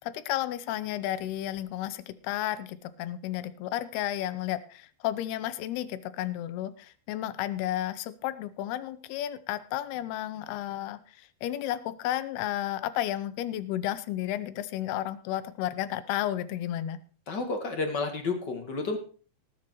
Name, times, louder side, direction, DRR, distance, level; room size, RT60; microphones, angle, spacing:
voice 1, 0.0-17.0, left 13 dB, 85° left, 13 dB, 2.8 m, -32 dB
voice 2, 17.3-19.0, left 3 dB, 40° left, 5 dB, 1.6 m, -31 dB
19.0 x 7.4 x 4.6 m, 0.38 s
omnidirectional pair, 4.5 m